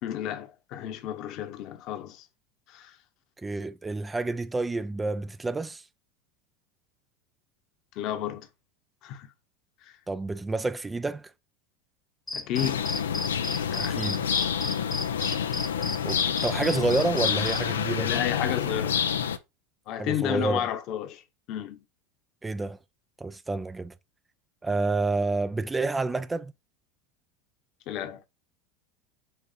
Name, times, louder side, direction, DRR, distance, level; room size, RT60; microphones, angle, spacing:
voice 1, 0.0-2.3 2.7-3.0 7.9-8.5 9.0-9.3 9.8-10.0 12.3-12.9 13.7-14.2 15.2-15.5 18.0-19.2 19.9-21.2 21.5-21.8 27.9-28.2, left 11 dB, 55° left, 1.1 m, -32 dB
voice 2, 3.4-5.8 10.1-11.3 13.8-14.2 16.0-18.1 20.0-20.7 22.4-22.8 23.2-23.9 24.6-26.5, right 3 dB, 15° right, 0.4 m, -29 dB
sound 1, 12.3-17.6, left 2 dB, 10° left, 1.0 m, -33 dB
sound 2, 12.5-19.4, left 8 dB, 85° left, 0.6 m, -28 dB
7.0 x 2.5 x 5.6 m
hypercardioid pair, 90°, 0 cm